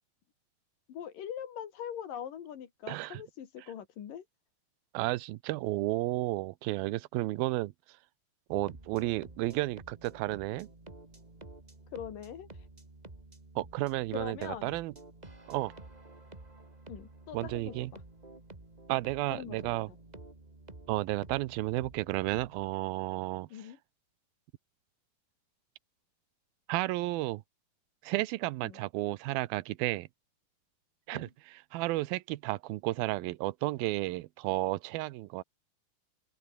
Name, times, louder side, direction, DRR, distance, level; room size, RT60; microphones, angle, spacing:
voice 1, 0.9-4.2 11.9-12.7 14.1-14.7 16.9-18.0 19.3-19.8 23.5-23.8 28.6-28.8 31.1-31.3, left 9 dB, 65° left, 3.7 m, -42 dB
voice 2, 2.9-3.2 4.9-7.7 8.5-10.7 13.6-14.9 15.5-15.7 17.3-17.9 18.9-19.9 20.9-23.7 26.7-27.4 28.0-30.1 31.1-35.4, right 19 dB, 80° right, 2.6 m, -32 dB
sound 1, 8.5-22.7, right 2 dB, 15° right, 2.0 m, -51 dB
open air
omnidirectional pair, 4.3 m